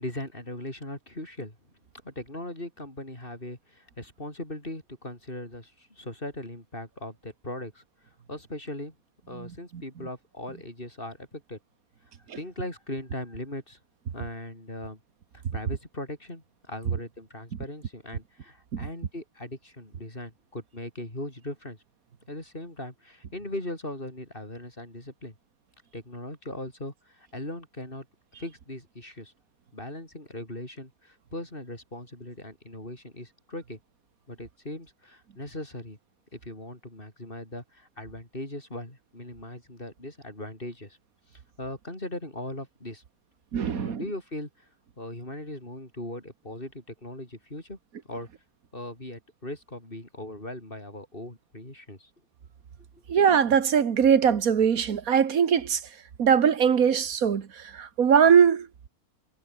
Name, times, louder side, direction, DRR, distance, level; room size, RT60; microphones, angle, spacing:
voice 1, 0.0-1.6 2.0-7.8 8.3-9.0 9.3-11.6 12.4-13.8 14.1-15.0 15.3-21.8 22.3-25.3 25.9-28.1 28.4-29.3 29.7-33.8 34.3-36.0 36.3-41.0 41.3-43.0 43.7-44.7 45.0-47.8 48.1-48.3 48.7-52.1 52.9-53.0, left 1 dB, 35° left, 7.1 m, -39 dB
voice 2, 9.3-9.8 18.7-18.9 43.5-44.0 53.1-55.8 56.2-58.7, right 7 dB, 65° right, 1.7 m, -21 dB
omnidirectional pair, 1.6 m